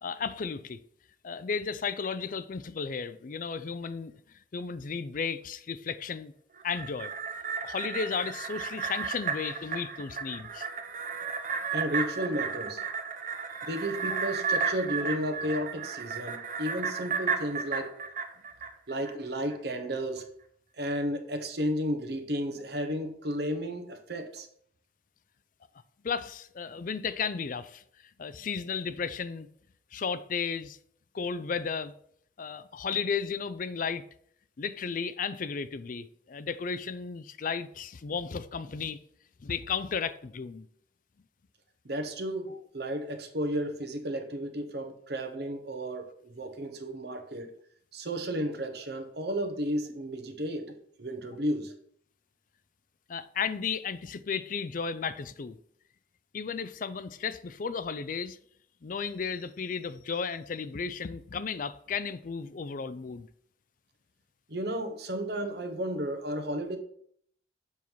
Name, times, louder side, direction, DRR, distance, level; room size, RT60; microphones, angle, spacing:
voice 1, 0.0-0.8 1.2-4.1 4.5-6.3 6.6-7.1 7.6-10.7 26.0-27.8 28.2-29.5 29.9-30.8 31.1-31.9 32.4-34.0 34.6-39.0 39.4-40.7 53.1-55.6 56.3-58.4 58.8-63.3, left 6 dB, 50° left, 0.4 m, -34 dB
sound 1, 6.6-19.1 19.5-19.6, right 5 dB, 45° right, 0.8 m, -33 dB
voice 2, 11.7-12.8 13.6-17.9 18.9-20.3 20.8-24.5 41.8-47.5 47.9-51.7 64.5-66.8, equal, 60° right, 1.1 m, -33 dB
7.2 x 5.6 x 4.6 m
head